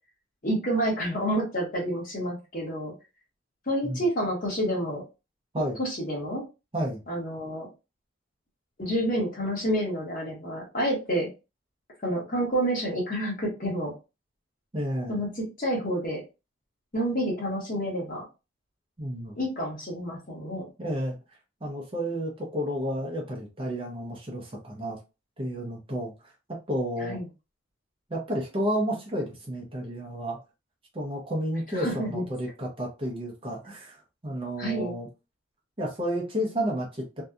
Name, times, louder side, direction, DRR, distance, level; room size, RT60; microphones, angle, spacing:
voice 1, 0.4-2.9 3.7-5.0 5.8-6.4 7.1-7.7 8.8-11.3 12.0-13.9 15.1-16.2 16.9-18.2 19.4-20.7 27.0-27.2 31.7-32.2 34.6-34.9, right 1 dB, 45° left, 1.1 m, -29 dB
voice 2, 14.7-15.2 19.0-19.4 20.8-21.2 21.6-25.0 25.4-26.1 26.5-27.2 28.1-30.4 30.9-35.1 35.8-37.2, equal, 25° right, 0.6 m, -31 dB
2.7 x 2.3 x 2.3 m
head